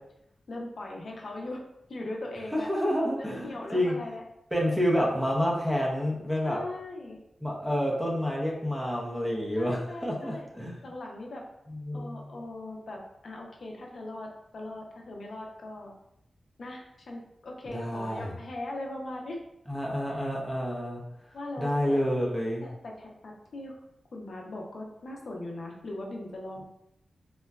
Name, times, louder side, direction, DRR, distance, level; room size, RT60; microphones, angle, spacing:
voice 1, 0.5-1.6 1.9-2.7 3.2-4.2 6.4-7.2 9.6-10.5 10.8-11.4 11.9-15.9 16.6-19.4 20.1-20.2 20.8-21.0 21.3-22.0 22.6-23.8 24.1-26.6, left 2 dB, 60° left, 0 dB, 0.4 m, -40 dB
voice 2, 2.5-3.9 4.5-6.6 7.4-10.8 11.8-12.3 17.7-18.3 19.7-21.0 21.6-22.6, equal, 5° right, -3 dB, 0.6 m, -29 dB
3.6 x 2.1 x 2.2 m, 0.79 s
wide cardioid pair, 145°, 0 cm